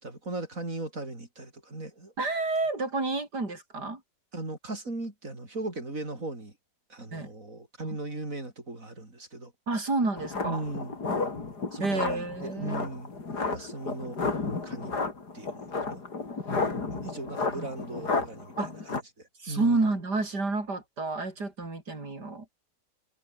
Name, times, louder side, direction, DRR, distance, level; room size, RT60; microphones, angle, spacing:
voice 1, 0.0-2.1 4.3-6.5 6.9-9.5 10.4-10.9 11.7-13.1 13.5-14.2 14.6-14.9 15.3-16.0 16.9-18.5 19.2-19.9, right 2 dB, 55° right, 5.9 m, -38 dB
voice 2, 2.2-4.0 7.1-7.3 7.8-8.0 9.7-10.6 11.8-12.8 17.6-17.7 18.6-18.7 19.4-22.5, right 3 dB, 85° right, 5.7 m, -30 dB
sound 1, 10.2-19.0, left 4 dB, 80° left, 4.2 m, -32 dB
omnidirectional pair, 1.7 m